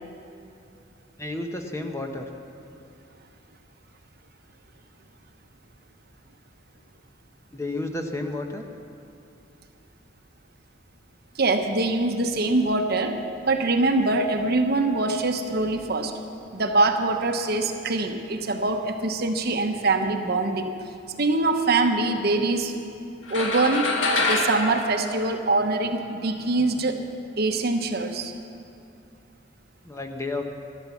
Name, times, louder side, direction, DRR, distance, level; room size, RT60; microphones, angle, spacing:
voice 1, 1.2-2.3 7.5-8.6 29.8-30.5, left 2 dB, 15° left, 4 dB, 0.9 m, -31 dB
voice 2, 11.3-13.2 13.4-16.1 16.5-20.7 21.2-22.7 23.3-23.9 24.2-27.0 27.4-28.3, right 2 dB, 55° right, 5 dB, 1.0 m, -23 dB
sound 1, 23.3-25.9, left 2 dB, 70° left, 1.7 m, -26 dB
13.0 x 12.5 x 7.1 m, 2.7 s
head